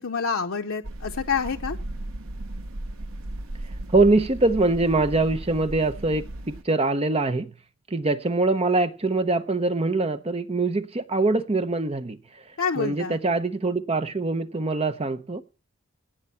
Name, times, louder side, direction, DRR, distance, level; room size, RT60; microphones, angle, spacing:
voice 1, 0.0-1.8 12.6-13.2, left 5 dB, 75° left, 3 dB, 0.7 m, -27 dB
sound 1, 0.8-6.6, right 1 dB, 75° right, 0.9 m, -36 dB
voice 2, 3.9-6.2 6.6-7.5 7.9-12.2 12.8-15.4, right 2 dB, 30° right, 11 dB, 0.7 m, -23 dB
18.0 x 6.0 x 5.6 m, 0.33 s
head